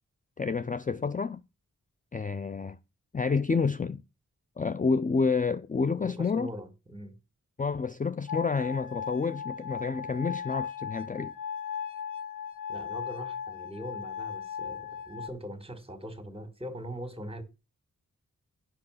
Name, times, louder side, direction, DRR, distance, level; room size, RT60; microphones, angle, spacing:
voice 1, 0.4-1.4 2.1-2.8 3.1-4.0 4.6-6.5 7.6-11.3, left 4 dB, 25° left, 0.5 m, -29 dB
voice 2, 6.0-7.2 12.7-17.4, equal, 15° right, 2.1 m, -41 dB
sound 1, 8.3-15.3, left 7 dB, 70° left, 1.1 m, -37 dB
8.6 x 5.8 x 6.4 m
cardioid pair, 55°, 33 cm